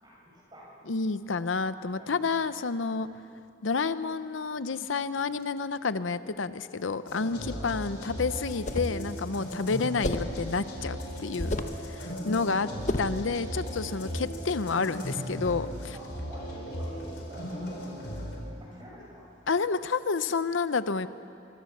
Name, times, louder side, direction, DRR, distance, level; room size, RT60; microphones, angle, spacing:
voice 1, 0.0-0.7 1.1-2.4 3.1-3.2 7.5-7.8 12.0-12.7 14.0-14.2 15.9-19.3, right 1 dB, 25° right, -4 dB, 7.5 m, -49 dB
voice 2, 0.9-3.1 3.6-11.6 11.9-12.0 12.3-12.7 13.0-15.9 19.5-21.1, left 4 dB, 85° left, 13 dB, 0.7 m, -29 dB
sound 1, 7.1-18.4, equal, 60° left, 4.5 m, -37 dB
sound 2, 8.5-9.0 10.0-10.4 11.4-11.8 12.9-13.2, left 2 dB, 40° left, 1.1 m, -31 dB
24.0 x 24.0 x 7.3 m, 2.5 s
head